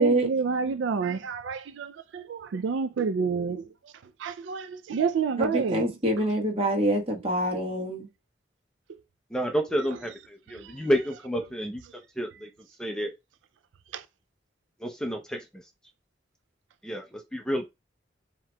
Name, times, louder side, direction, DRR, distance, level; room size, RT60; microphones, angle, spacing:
voice 1, 0.0-5.9 6.1-6.2 9.7-10.0 10.5-10.9 13.9-14.1, right 5 dB, 80° right, 0.4 m, -29 dB
voice 2, 5.4-8.1, right 1 dB, 30° right, 1.1 m, -25 dB
voice 3, 9.3-11.8 12.2-12.5 12.8-13.1 14.8-15.4 16.8-17.6, equal, 5° left, 0.5 m, -29 dB
7.2 x 3.0 x 2.2 m
head